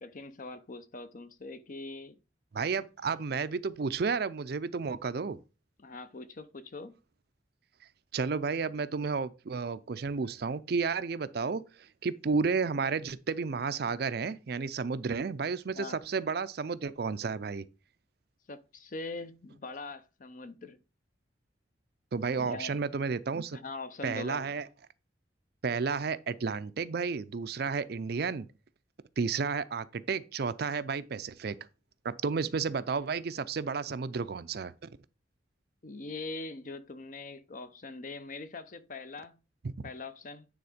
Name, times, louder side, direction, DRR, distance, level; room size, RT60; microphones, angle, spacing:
voice 1, 0.0-2.2 5.8-6.9 15.7-16.0 18.5-20.8 22.4-22.8 23.5-24.5 35.8-39.4 39.8-40.5, left 3 dB, 45° left, 0.6 m, -42 dB
voice 2, 2.5-5.4 8.1-17.6 22.1-23.6 24.0-24.6 25.6-28.5 29.2-31.6 32.0-34.9 39.6-39.9, right 5 dB, 55° right, 0.5 m, -32 dB
9.5 x 3.6 x 5.0 m
head